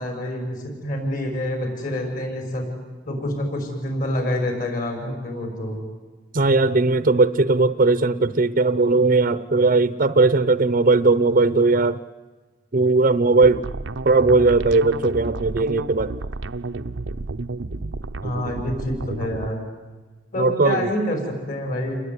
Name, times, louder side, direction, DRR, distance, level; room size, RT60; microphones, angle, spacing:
voice 1, 0.0-2.7 3.0-5.8 18.2-19.6 20.3-22.0, left 1 dB, 45° left, 4 dB, 6.3 m, -27 dB
voice 2, 6.3-12.0 12.7-13.6 14.0-16.1 20.4-20.9, right 3 dB, 45° right, 13 dB, 0.8 m, -18 dB
sound 1, 13.4-19.5, right 3 dB, 80° right, 0.8 m, -31 dB
29.5 x 21.0 x 9.7 m, 1.3 s
head